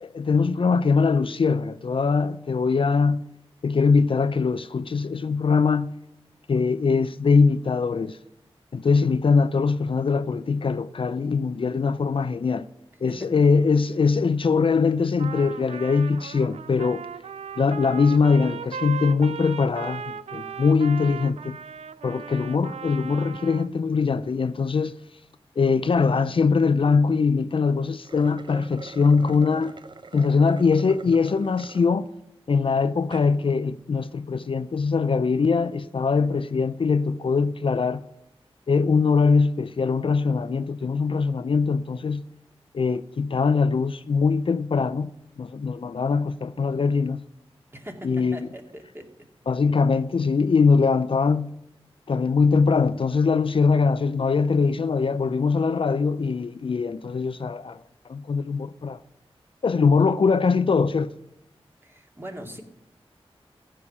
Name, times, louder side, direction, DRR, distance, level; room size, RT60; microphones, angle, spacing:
voice 1, 0.0-3.3 3.6-5.9 6.5-8.2 8.7-12.7 13.0-17.1 17.6-21.6 22.0-24.9 25.6-29.7 30.1-32.1 32.5-38.0 38.7-42.2 42.7-45.1 45.4-47.2 48.0-48.5 49.5-51.5 52.1-57.8 58.1-59.0 59.6-61.1, left 5 dB, 55° left, 0.5 m, -22 dB
Trumpet, 15.2-23.7, right 7 dB, 90° right, 0.4 m, -37 dB
sound 1, 27.9-31.9 32.4-32.5 33.0-33.3, right 3 dB, 50° right, 0.7 m, -44 dB
voice 2, 47.7-49.1 61.8-62.6, right 1 dB, 20° right, 2.3 m, -40 dB
14.5 x 5.8 x 9.8 m
wide cardioid pair, 65°, 10 cm